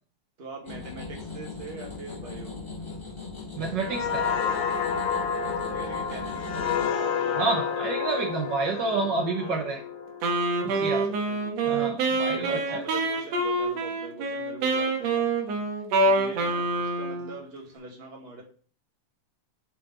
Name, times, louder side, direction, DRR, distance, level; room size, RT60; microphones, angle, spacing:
voice 1, 0.4-2.5 5.4-7.6 8.9-9.1 9.4-9.7 10.6-11.7 12.3-15.6 16.0-18.4, right 3 dB, 30° right, 0 dB, 1.1 m, -43 dB
sound 1, 0.6-6.9, left 4 dB, 10° left, 1.8 m, -39 dB
voice 2, 3.6-4.4 7.3-9.8 10.8-11.0 11.6-12.8, right 3 dB, 85° right, 0 dB, 0.9 m, -29 dB
sound 2, 3.8-11.3 11.7-11.9, left 7 dB, 70° left, 1.7 m, -30 dB
Wind instrument woodwind instrument, 10.2-17.4, right 2 dB, 65° right, 2.2 m, -26 dB
8.6 x 4.1 x 3.8 m, 0.41 s
omnidirectional pair, 3.5 m